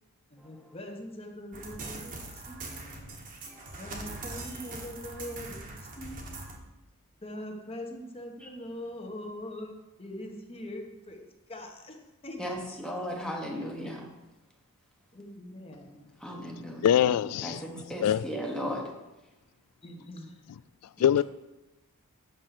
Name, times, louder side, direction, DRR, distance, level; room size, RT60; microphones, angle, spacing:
voice 1, 0.3-3.3 3.8-6.8 7.2-9.7 10.0-12.4 12.7-12.8 15.1-16.0 16.3-16.6 19.8-20.6, left 1 dB, 25° left, 1.3 m, -43 dB
sound 1, 1.5-6.6, right 2 dB, 35° right, 1.4 m, -42 dB
voice 2, 3.5-3.8 8.4-8.5 12.4-14.1 16.2-16.9 17.4-18.9, equal, 5° left, 1.1 m, -36 dB
voice 3, 16.8-17.6 18.0-18.3 21.0-21.2, left 10 dB, 85° left, 0.3 m, -23 dB
8.5 x 6.3 x 5.8 m
head